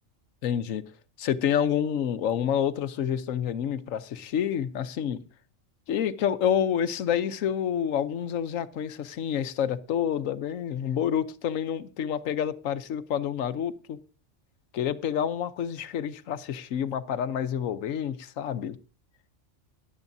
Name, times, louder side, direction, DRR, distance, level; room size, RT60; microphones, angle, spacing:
voice 1, 0.4-0.8 1.2-5.2 5.9-14.0 14.7-18.8, left 9 dB, 85° left, 1.2 m, -28 dB
18.0 x 11.0 x 2.7 m
omnidirectional pair, 1.3 m